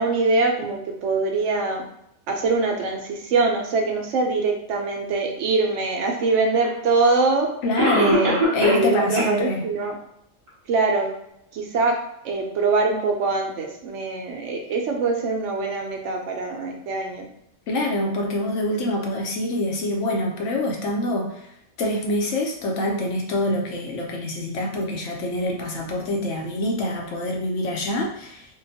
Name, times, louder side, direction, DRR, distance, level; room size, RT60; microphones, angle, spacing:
voice 1, 0.0-1.8 2.3-7.5 8.0-9.9 10.7-11.1 11.5-12.0 12.2-17.3, right 3 dB, 75° right, 2 dB, 0.9 m, -23 dB
Cough, 6.6-6.7 7.8-8.9 9.2-9.3 9.8-9.9 10.5-10.6, equal, 30° right, 0.8 m, -21 dB
voice 2, 7.6-9.6 17.7-21.4 21.8-28.5, left 1 dB, 70° left, 0 dB, 1.0 m, -25 dB
3.7 x 2.2 x 2.7 m, 0.76 s
omnidirectional pair, 1.3 m